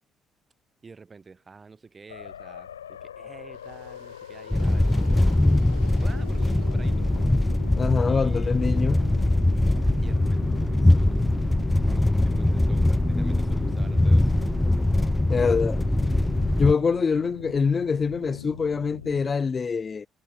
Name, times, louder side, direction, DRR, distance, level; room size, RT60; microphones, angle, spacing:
voice 1, 0.8-5.3 6.0-7.1 8.0-8.9 10.0-14.4, right 4 dB, 35° right, 6.3 m, -49 dB
sound 1, 2.1-19.3, left 9 dB, 85° left, 0.7 m, -42 dB
sound 2, 3.5-7.6, right 32 dB, 75° right, 5.7 m, -61 dB
sound 3, 4.5-16.7, left 1 dB, 10° left, 0.9 m, -22 dB
voice 2, 7.8-9.1 15.3-15.8 16.6-20.1, left 5 dB, 40° left, 1.3 m, -24 dB
hypercardioid pair, 45°, 0 cm